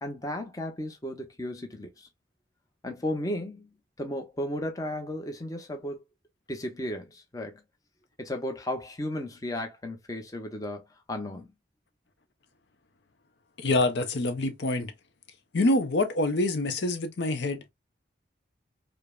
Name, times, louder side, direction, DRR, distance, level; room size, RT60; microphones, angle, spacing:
voice 1, 0.0-2.1 2.8-3.7 4.0-6.0 6.5-7.6 8.2-11.5, left 1 dB, 20° left, 0.6 m, -34 dB
voice 2, 13.6-14.9 15.5-17.7, left 2 dB, 65° left, 0.6 m, -26 dB
5.0 x 2.0 x 2.2 m
head